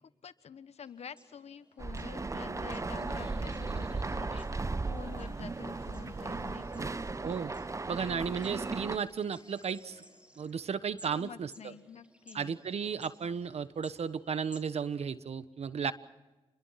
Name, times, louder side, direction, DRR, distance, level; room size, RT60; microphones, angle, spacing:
voice 1, 0.0-6.9 11.1-12.5 15.8-15.9, left 7 dB, 80° left, 13 dB, 1.2 m, -48 dB
sound 1, 0.8-15.1, right 1 dB, 10° right, 3.9 m, -60 dB
sound 2, 1.8-9.0, right 3 dB, 30° right, 0.8 m, -36 dB
sound 3, 2.6-10.6, left 3 dB, 55° left, 6.2 m, -62 dB
voice 2, 7.9-10.0 10.4-11.7 12.3-15.9, right 6 dB, 75° right, 13 dB, 1.3 m, -34 dB
28.0 x 22.0 x 5.9 m, 1.1 s
cardioid pair, 65°, 11 cm